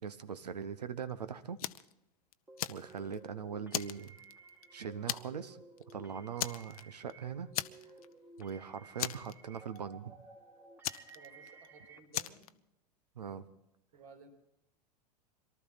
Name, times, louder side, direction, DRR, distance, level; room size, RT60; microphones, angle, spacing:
voice 1, 0.0-1.6 2.7-4.2 4.7-5.6 5.9-7.5 8.4-10.1 13.2-13.4, right 7 dB, 75° right, 13 dB, 1.0 m, -41 dB
Fire, 1.6-1.9 2.3-3.3 3.7-4.6 5.1-5.5 5.8-5.9 6.4-7.1 7.5-8.1 8.4-8.5 9.0-9.8 10.8-11.7 12.1-12.5, left 13 dB, 60° left, 0.7 m, -38 dB
sound 1, 2.5-12.0, right 4 dB, 10° right, 1.8 m, -56 dB
voice 2, 11.1-12.4 13.9-14.3, right 5 dB, 55° right, 4 dB, 3.2 m, -56 dB
23.0 x 13.0 x 4.1 m, 0.84 s
figure-of-eight pair, 90°, 21 cm